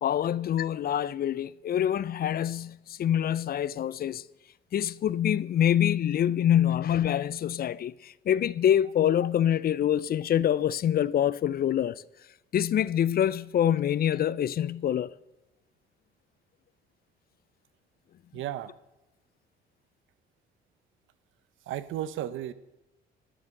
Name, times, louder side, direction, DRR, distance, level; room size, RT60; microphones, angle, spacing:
voice 1, 0.0-4.2 4.7-12.0 12.5-15.1, left 10 dB, 50° left, 0.4 m, -25 dB
voice 2, 18.3-18.7 21.7-22.5, right 12 dB, 80° right, 0.7 m, -34 dB
11.5 x 7.1 x 6.5 m
cardioid pair, 90°, 20 cm